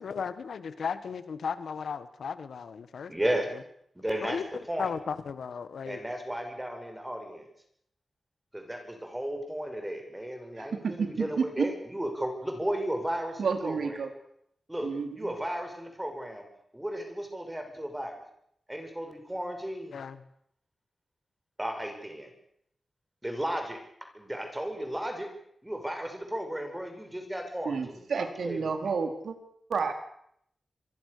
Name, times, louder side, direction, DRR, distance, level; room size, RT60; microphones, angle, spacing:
voice 1, 0.0-3.6 4.2-4.5 4.8-6.0 19.9-20.2, left 6 dB, 90° left, 12 dB, 1.7 m, -36 dB
voice 2, 3.1-3.5 4.0-4.4 4.7-4.9 5.8-7.5 8.5-14.1 14.7-16.5 16.7-18.2 18.7-20.0 21.6-22.3 23.2-23.8 24.1-25.3 25.6-28.9, right 1 dB, 10° right, 5 dB, 6.1 m, -34 dB
voice 3, 10.6-11.4 13.4-14.1 14.8-15.3 27.6-29.4 29.7-29.9, right 5 dB, 85° right, 6 dB, 4.5 m, -30 dB
26.5 x 23.5 x 6.8 m, 0.70 s
wide cardioid pair, 135°, 0 cm